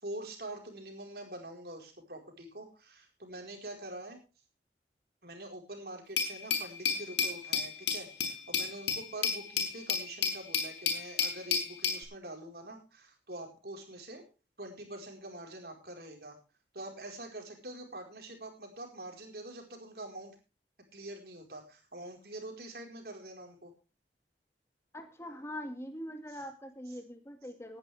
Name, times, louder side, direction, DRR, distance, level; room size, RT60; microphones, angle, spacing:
voice 1, 0.0-4.2 5.2-14.2 14.6-16.4 16.7-20.3 20.9-23.7 26.3-26.4, right 1 dB, 60° right, 2 dB, 4.7 m, -45 dB
Glass, 6.2-12.0, left 6 dB, 80° left, 5.0 m, -32 dB
voice 2, 24.9-27.8, equal, 15° left, 5 dB, 2.1 m, -43 dB
18.5 x 11.0 x 3.5 m, 0.32 s
head